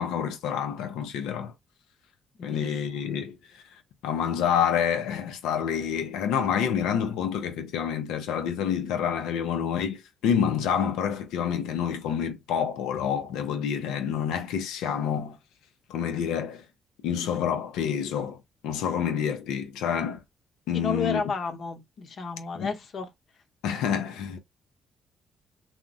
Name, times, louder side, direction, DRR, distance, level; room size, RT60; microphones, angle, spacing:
voice 1, 0.0-1.5 2.4-3.6 4.0-15.4 15.9-16.6 17.0-20.2 20.7-21.2 22.5-22.7 23.6-24.4, left 8 dB, 90° left, 0.4 m, -28 dB
voice 2, 2.4-3.0 20.7-23.1, left 4 dB, 60° left, 0.7 m, -32 dB
3.4 x 2.1 x 2.5 m
cardioid pair, 75°, 0 cm